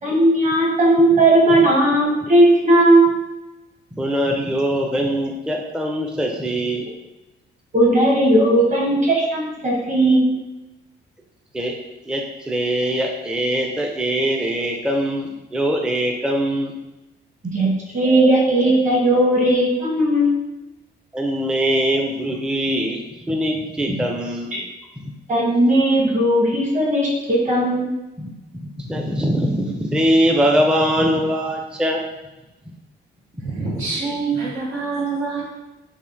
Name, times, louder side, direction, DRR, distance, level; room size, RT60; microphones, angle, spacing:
voice 1, 0.0-3.0 7.7-10.4 17.4-20.3 24.5-24.6 25.3-28.0, right 1 dB, 40° right, -3 dB, 1.3 m, -17 dB
voice 2, 3.9-6.9 11.5-11.7 12.1-16.7 21.1-24.5 25.0-25.1 28.2-28.3 28.8-32.0 33.5-33.8, equal, 5° right, 1 dB, 0.4 m, -22 dB
voice 3, 33.4-35.4, right 4 dB, 90° right, -5 dB, 1.3 m, -25 dB
3.5 x 2.5 x 3.8 m, 1.0 s
cardioid pair, 90°, 20 cm